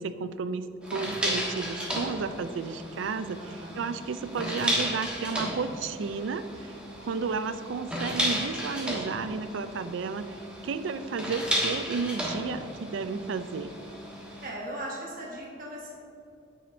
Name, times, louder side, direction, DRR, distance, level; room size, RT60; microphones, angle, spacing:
voice 1, 0.0-6.7 7.0-10.4 10.6-13.7, right 5 dB, 80° right, 12 dB, 0.4 m, -32 dB
sound 1, 0.8-14.5, equal, 5° right, 1.3 m, -34 dB
voice 2, 3.4-3.9 14.4-15.9, right 1 dB, 45° right, -3 dB, 1.3 m, -38 dB
8.5 x 7.0 x 2.7 m, 2.7 s
head